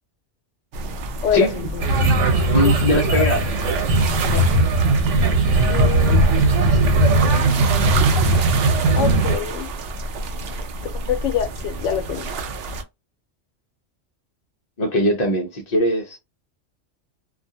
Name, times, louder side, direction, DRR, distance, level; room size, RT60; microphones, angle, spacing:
sound 1, 0.7-12.8, right 3 dB, 65° right, 0.7 m, -29 dB
voice 1, 1.2-1.9 2.6-3.2 4.2-4.5 5.7-6.6 8.9-9.7 11.1-12.3, left 8 dB, 80° left, 0.9 m, -26 dB
sound 2, 1.8-9.4, right 2 dB, 90° right, 1.0 m, -18 dB
voice 2, 2.5-3.9 14.8-16.2, equal, 45° left, 0.6 m, -21 dB
2.4 x 2.3 x 2.6 m
omnidirectional pair, 1.2 m